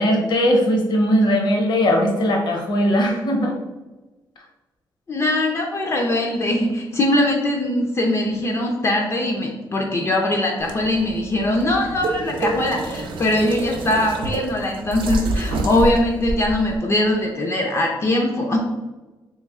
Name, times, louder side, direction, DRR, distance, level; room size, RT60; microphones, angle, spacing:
voice 1, 0.0-3.6, equal, 65° left, 2 dB, 0.8 m, -19 dB
voice 2, 5.1-18.6, left 1 dB, 35° left, 0 dB, 0.5 m, -21 dB
sound 1, 10.6-16.8, right 2 dB, 85° right, 0.5 m, -28 dB
3.2 x 3.2 x 3.5 m, 1.1 s
wide cardioid pair, 140°, 8 cm